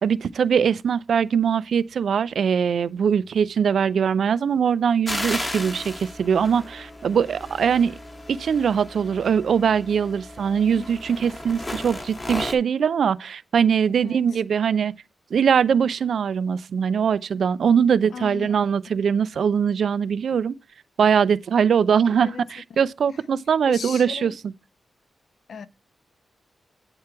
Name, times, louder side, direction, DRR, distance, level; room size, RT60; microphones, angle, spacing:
voice 1, 0.0-7.9 8.3-14.9 15.3-20.6 21.0-24.3, right 7 dB, 60° right, 0.4 m, -21 dB
sound 1, 5.1-12.5, left 1 dB, 20° left, 1.0 m, -35 dB
voice 2, 14.0-14.4 18.1-18.5 22.2-22.4 23.1-23.2 23.7-24.3 25.5-25.7, left 6 dB, 60° left, 0.5 m, -37 dB
8.6 x 4.5 x 4.7 m
wide cardioid pair, 175°, 0 cm